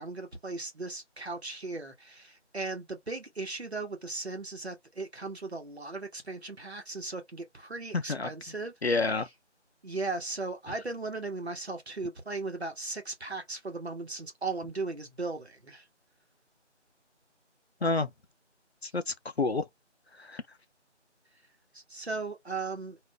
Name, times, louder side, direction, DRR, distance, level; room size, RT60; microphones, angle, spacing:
voice 1, 0.0-8.7 9.8-15.9 21.7-23.0, right 3 dB, 60° right, 1.0 m, -37 dB
voice 2, 7.9-8.3 8.8-9.3 17.8-18.1 18.8-19.6 20.2-20.4, left 3 dB, 60° left, 0.5 m, -28 dB
2.5 x 2.0 x 3.4 m
figure-of-eight pair, 175°, 36 cm